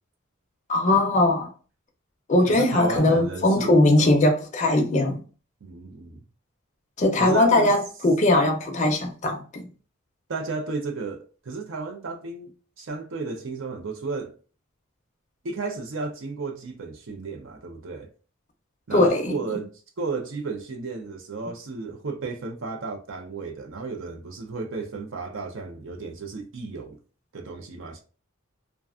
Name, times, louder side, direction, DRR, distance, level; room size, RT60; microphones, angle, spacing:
voice 1, 0.7-1.5 2.3-5.2 7.0-9.7 18.9-19.6, left 2 dB, 35° left, 0.5 m, -20 dB
voice 2, 2.5-4.2 5.6-6.2 7.2-7.7 10.3-14.3 15.4-18.1 18.9-19.7 20.0-27.0 27.3-28.0, right 3 dB, 65° right, 0.6 m, -33 dB
2.4 x 2.3 x 2.3 m
head